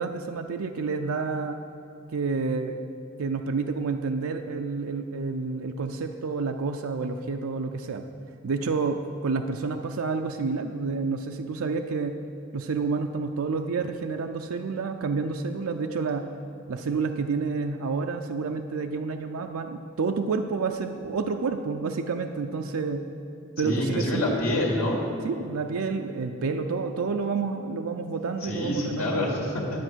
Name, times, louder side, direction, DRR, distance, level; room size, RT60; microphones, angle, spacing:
voice 1, 0.0-1.6 2.1-2.8 3.2-8.0 8.4-9.0 9.2-12.2 12.5-16.3 16.7-23.0 23.6-24.3 25.2-29.3, right 4 dB, 75° right, 4 dB, 0.5 m, -29 dB
voice 2, 23.6-25.0 28.4-29.8, left 1 dB, 85° left, -2 dB, 2.1 m, -27 dB
10.5 x 8.1 x 6.1 m, 2.5 s
head